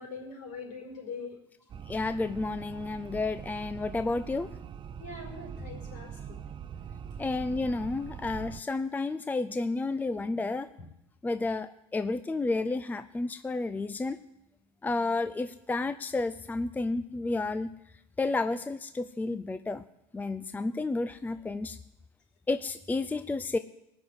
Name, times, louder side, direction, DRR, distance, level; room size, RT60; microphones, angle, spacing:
voice 1, 0.0-1.4 5.0-6.4, left 4 dB, 65° left, 2 dB, 5.3 m, -42 dB
sound 1, 1.7-8.6, right 7 dB, 35° right, 0.7 m, -43 dB
voice 2, 1.9-4.5 7.2-10.7 11.2-14.2 14.8-17.7 18.2-19.8 20.1-21.8 22.5-23.6, left 3 dB, 10° left, 12 dB, 0.5 m, -31 dB
18.0 x 6.4 x 9.6 m, 0.85 s
supercardioid pair, 100°, 14 cm